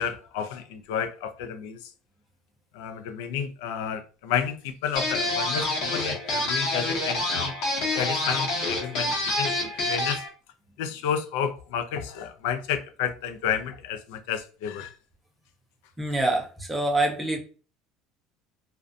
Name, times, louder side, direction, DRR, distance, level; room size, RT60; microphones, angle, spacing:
voice 1, 0.0-1.9 2.7-7.5 7.9-10.2 10.8-14.9, left 8 dB, 80° left, 0.3 m, -31 dB
sound 1, 5.0-10.3, left 2 dB, 50° left, 0.8 m, -27 dB
voice 2, 16.0-17.4, right 2 dB, 5° right, 0.5 m, -25 dB
2.4 x 2.1 x 2.5 m
cardioid pair, 165°, 0 cm